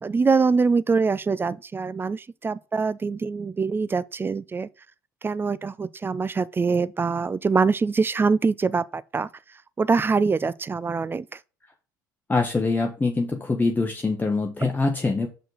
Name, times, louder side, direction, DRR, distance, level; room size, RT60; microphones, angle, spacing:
voice 1, 0.0-4.7 5.2-9.3 9.8-11.2, right 4 dB, 20° right, 0.4 m, -24 dB
voice 2, 12.3-15.3, left 3 dB, 15° left, 1.0 m, -24 dB
6.4 x 4.5 x 4.0 m
hypercardioid pair, 65°, 10 cm